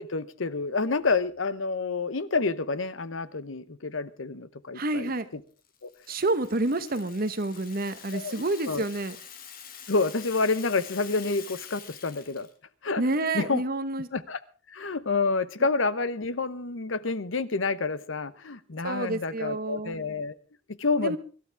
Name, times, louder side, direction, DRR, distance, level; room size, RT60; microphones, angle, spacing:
voice 1, 0.0-5.4 5.8-5.9 8.1-8.8 9.9-12.5 12.8-13.0 13.3-13.6 14.1-14.4 14.7-20.3 20.7-21.2, left 3 dB, 85° left, 15 dB, 0.9 m, -29 dB
voice 2, 4.7-5.3 6.1-9.2 13.0-14.1 18.8-20.0 21.0-21.2, right 2 dB, 50° right, 11 dB, 1.2 m, -29 dB
Rattle (instrument), 5.6-12.5, left 7 dB, 50° left, 1.7 m, -46 dB
24.0 x 12.5 x 3.5 m, 0.37 s
head